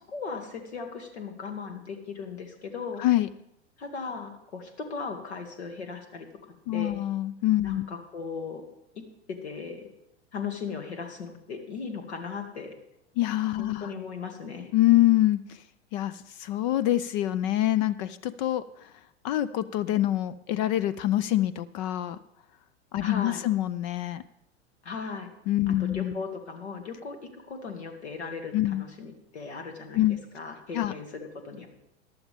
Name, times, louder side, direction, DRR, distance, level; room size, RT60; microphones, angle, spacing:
voice 1, 0.1-3.0 3.8-6.3 6.7-7.0 7.6-8.6 8.9-9.9 10.3-12.7 13.6-14.7 23.0-23.4 24.8-25.3 25.8-30.0 30.3-31.7, left 5 dB, 70° left, 5 dB, 2.2 m, -37 dB
voice 2, 3.0-3.3 6.7-7.9 13.2-13.9 14.7-15.6 15.9-18.9 19.2-22.2 22.9-24.2 25.5-26.1 28.5-28.8 29.9-30.2 30.7-30.9, left 14 dB, 40° left, 17 dB, 0.5 m, -25 dB
15.0 x 11.0 x 3.5 m, 0.85 s
figure-of-eight pair, 90°, 34 cm